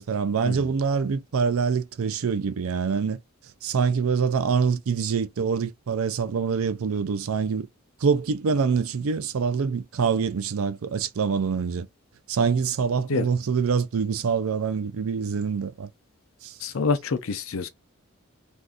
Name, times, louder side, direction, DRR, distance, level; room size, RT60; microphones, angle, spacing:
voice 1, 0.0-3.2 3.6-7.7 8.0-11.9 12.3-15.9 16.4-16.6, right 5 dB, 80° right, 0.4 m, -25 dB
voice 2, 16.6-17.7, left 4 dB, 70° left, 0.5 m, -27 dB
2.6 x 2.4 x 3.5 m
head